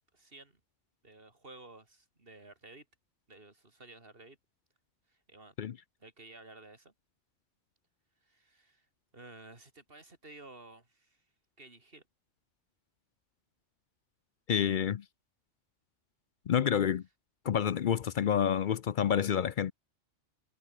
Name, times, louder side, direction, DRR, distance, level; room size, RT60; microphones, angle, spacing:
voice 1, 0.1-0.6 1.0-2.9 3.3-4.4 5.1-5.6 6.0-6.9 8.2-8.9 9.1-11.2 11.6-12.0, right 2 dB, 50° right, 3.8 m, -53 dB
voice 2, 14.5-15.0 16.5-17.0 17.4-19.7, left 8 dB, 55° left, 0.6 m, -28 dB
omnidirectional pair, 1.3 m